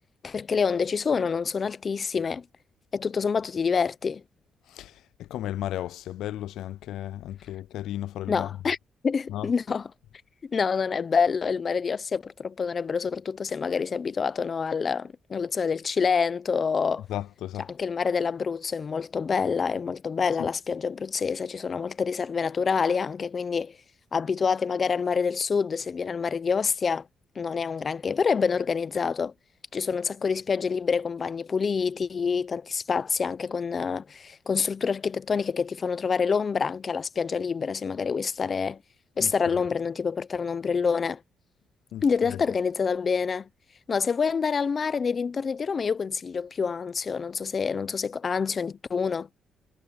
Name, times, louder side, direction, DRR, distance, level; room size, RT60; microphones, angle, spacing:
voice 1, 0.2-2.5 2.9-4.2 8.3-8.8 9.0-9.9 10.4-17.1 17.7-23.8 24.1-27.1 27.4-29.3 29.7-38.8 39.2-41.2 42.0-43.5 43.9-49.3, left 5 dB, 40° left, 0.7 m, -27 dB
voice 2, 4.7-8.5 9.3-9.5 17.1-17.7 20.4-20.5 39.2-39.3 41.9-42.4, left 13 dB, 85° left, 0.3 m, -34 dB
cardioid pair, 90°, 0 cm